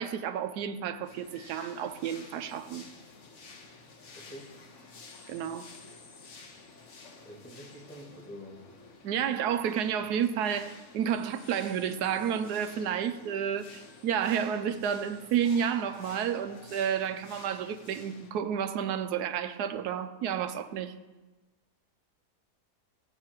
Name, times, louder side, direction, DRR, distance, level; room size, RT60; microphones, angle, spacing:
voice 1, 0.0-2.8 5.3-5.7 9.0-20.9, right 8 dB, 90° right, 1.2 m, -31 dB
sound 1, 1.0-18.3, left 3 dB, 50° left, 1.3 m, -51 dB
voice 2, 4.1-4.5 7.2-8.6, equal, 10° left, 2.0 m, -46 dB
14.5 x 8.0 x 3.0 m
omnidirectional pair, 1.7 m